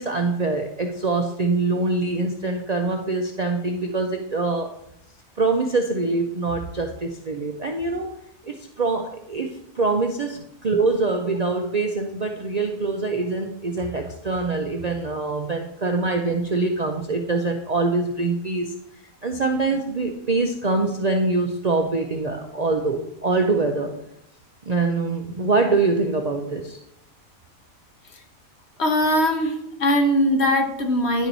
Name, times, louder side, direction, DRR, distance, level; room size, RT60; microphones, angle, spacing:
voice 1, 0.0-4.7 5.4-8.1 8.4-18.7 19.2-24.0 24.7-26.8, right 3 dB, 45° right, 3 dB, 0.5 m, -24 dB
voice 2, 28.8-31.3, equal, 55° left, 5 dB, 1.1 m, -21 dB
10.5 x 4.6 x 3.9 m, 0.77 s
omnidirectional pair, 1.4 m